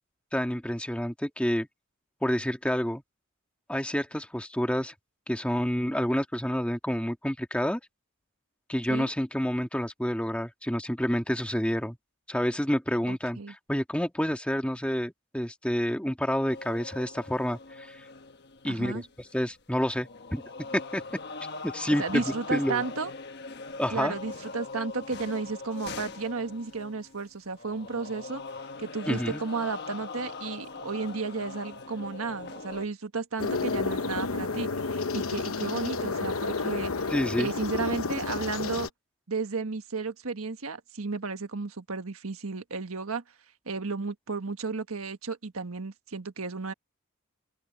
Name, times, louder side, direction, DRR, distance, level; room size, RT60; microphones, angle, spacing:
voice 1, 0.3-1.7 2.2-3.0 3.7-4.9 5.3-7.8 8.7-12.0 12.3-18.0 18.6-19.0 19.3-20.4 20.7-21.0 21.6-22.8 23.8-24.1 29.1-29.4 37.1-37.5, equal, 5° left, 1.6 m, -29 dB
voice 2, 13.1-13.5 18.6-19.0 21.9-23.1 23.9-28.4 28.8-36.9 37.4-38.9 39.3-43.2 43.7-46.7, right 4 dB, 90° right, 1.5 m, -33 dB
sound 1, 16.5-19.6 19.9-32.9, left 3 dB, 50° left, 1.3 m, -41 dB
sound 2, 33.4-38.9, left 4 dB, 80° left, 1.0 m, -31 dB
open air
head